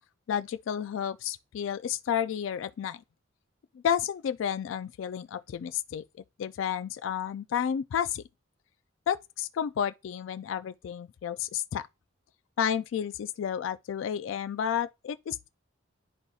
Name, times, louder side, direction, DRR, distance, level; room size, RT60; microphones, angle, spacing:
voice 1, 0.3-3.0 3.7-6.0 6.4-8.2 9.1-11.9 12.6-15.5, left 8 dB, 70° left, 0.3 m, -31 dB
11.0 x 4.1 x 2.3 m
head